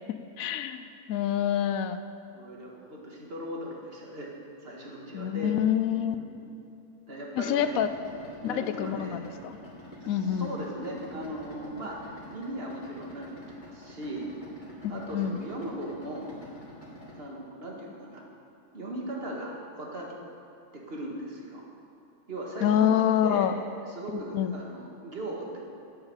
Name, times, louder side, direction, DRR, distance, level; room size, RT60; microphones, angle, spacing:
voice 1, 0.4-0.8 1.1-2.0 5.1-6.1 7.4-7.9 8.4-9.6 10.1-10.5 14.8-15.4 22.6-23.6 24.1-24.5, left 10 dB, 85° left, 10 dB, 1.0 m, -26 dB
voice 2, 2.3-4.3 4.6-5.6 5.9-6.5 7.1-7.8 8.4-9.2 10.0-14.3 14.9-16.3 17.1-18.2 18.7-20.1 20.7-21.6 22.3-23.5 23.9-25.6, right 1 dB, 45° right, -2 dB, 1.9 m, -38 dB
Idling, 7.6-17.2, left 1 dB, 35° left, 2.0 m, -47 dB
8.9 x 8.8 x 7.1 m, 2.6 s
omnidirectional pair, 1.4 m